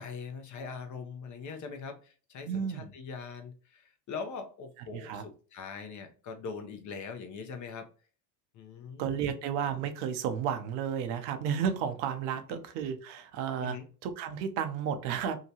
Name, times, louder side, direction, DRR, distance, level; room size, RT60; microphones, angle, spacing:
voice 1, 0.0-7.9 8.5-9.4 12.5-12.6 13.6-13.8, left 5 dB, 40° left, 0.7 m, -42 dB
voice 2, 2.4-2.9 4.9-5.2 9.0-13.8 14.0-15.4, right 8 dB, 65° right, 0.7 m, -32 dB
2.8 x 2.2 x 2.8 m
hypercardioid pair, 80°, 47 cm